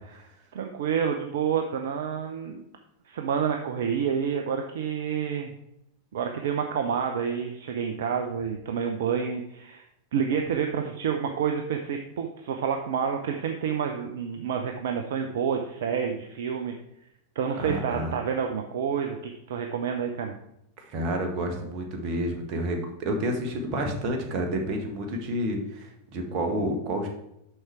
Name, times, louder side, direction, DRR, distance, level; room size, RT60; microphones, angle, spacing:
voice 1, 0.5-2.6 3.0-5.5 6.1-9.8 10.1-16.7 17.3-20.3, right 7 dB, 60° right, 4 dB, 0.7 m, -29 dB
voice 2, 17.6-18.1 20.9-27.1, right 1 dB, 40° right, 3 dB, 1.6 m, -29 dB
6.3 x 5.9 x 4.7 m, 0.80 s
figure-of-eight pair, 90°, 0 cm